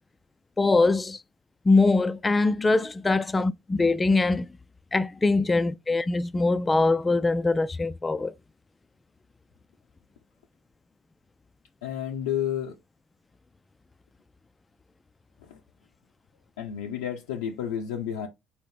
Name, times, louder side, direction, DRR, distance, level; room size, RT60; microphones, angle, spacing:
voice 1, 0.6-1.2 1.7-4.5 4.9-8.3, left 3 dB, 20° left, 0.3 m, -23 dB
voice 2, 11.8-12.7 15.5-15.6 16.6-18.3, left 9 dB, 75° left, 0.5 m, -31 dB
4.3 x 2.7 x 3.3 m
figure-of-eight pair, 55°, 0 cm